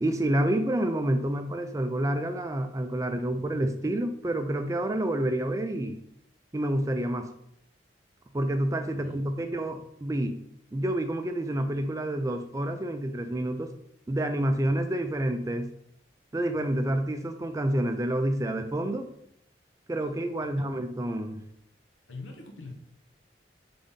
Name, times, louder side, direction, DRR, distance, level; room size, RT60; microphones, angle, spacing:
voice 1, 0.0-6.0 6.5-7.3 8.3-10.4 10.7-13.7 14.1-15.7 16.3-19.1 19.9-21.4, right 1 dB, 15° right, 7 dB, 0.3 m, -28 dB
voice 2, 8.9-9.8 20.6-20.7 22.1-22.7, left 3 dB, 90° left, 2 dB, 1.0 m, -44 dB
3.9 x 3.7 x 3.6 m, 0.72 s
head